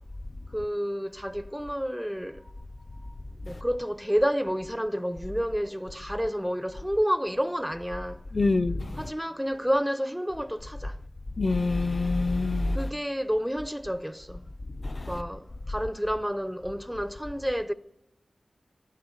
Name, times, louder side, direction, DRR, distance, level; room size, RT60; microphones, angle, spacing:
voice 1, 0.5-2.5 3.4-8.2 9.0-11.0 12.7-14.5 15.1-17.7, equal, ahead, 0.5 m, -30 dB
voice 2, 8.3-8.9 11.4-12.8 14.8-15.1, left 3 dB, 45° left, 0.5 m, -25 dB
12.5 x 11.5 x 9.7 m
wide cardioid pair, 70°, 0 cm